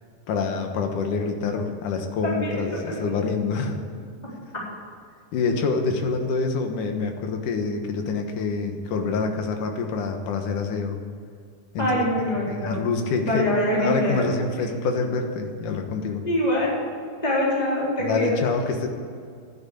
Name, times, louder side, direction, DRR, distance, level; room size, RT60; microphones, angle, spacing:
voice 1, 0.3-3.8 5.3-11.0 11.7-12.0 12.5-16.2 18.0-18.9, left 4 dB, 75° left, 4 dB, 2.8 m, -26 dB
voice 2, 2.2-3.0 11.8-12.8 13.2-14.2 16.2-16.7 17.2-18.4, left 1 dB, 10° left, -6 dB, 3.9 m, -24 dB
12.5 x 9.7 x 8.7 m, 2.3 s
omnidirectional pair, 3.8 m